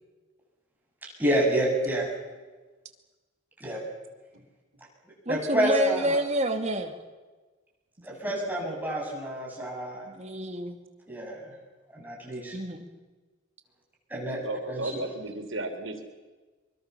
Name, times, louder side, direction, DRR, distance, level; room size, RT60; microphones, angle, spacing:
voice 1, 1.2-2.1 3.6-3.8 5.3-6.2 8.0-10.1 11.1-11.4 11.9-12.6 14.1-14.4 14.7-15.0, right 1 dB, 10° right, -2 dB, 7.4 m, -28 dB
voice 2, 5.3-6.9 8.6-8.7 10.1-10.8 12.5-12.9, equal, 35° right, 5 dB, 2.6 m, -28 dB
voice 3, 14.3-16.1, right 2 dB, 75° right, 5 dB, 4.2 m, -34 dB
25.0 x 23.0 x 7.0 m, 1.3 s
head